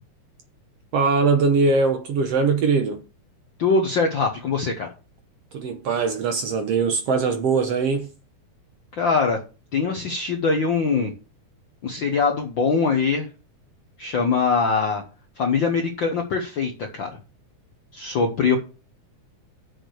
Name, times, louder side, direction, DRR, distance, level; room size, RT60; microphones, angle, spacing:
voice 1, 0.9-3.0 5.5-8.1, right 4 dB, 65° right, 1.7 m, -21 dB
voice 2, 3.6-4.9 9.0-9.4 9.7-11.1 11.8-13.3 14.0-15.0 15.4-17.2 17.9-18.6, left 4 dB, 65° left, 1.2 m, -22 dB
6.7 x 6.1 x 6.4 m
omnidirectional pair, 3.6 m